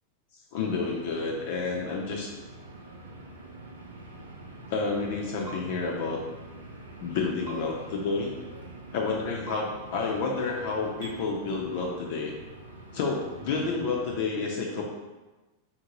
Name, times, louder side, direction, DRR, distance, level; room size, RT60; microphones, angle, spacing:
voice 1, 0.5-2.3 4.7-6.2 7.0-8.3 8.9-12.3 12.9-14.8, left 4 dB, 60° left, -1 dB, 0.5 m, -30 dB
sound 1, 0.6-14.2, right 2 dB, 90° right, 0.5 m, -46 dB
sound 2, 5.4-5.6 7.4-7.6 9.4-9.6 11.0-11.1, right 3 dB, 70° right, 1.1 m, -41 dB
3.6 x 2.6 x 2.9 m, 1.2 s
figure-of-eight pair, 90°, 0 cm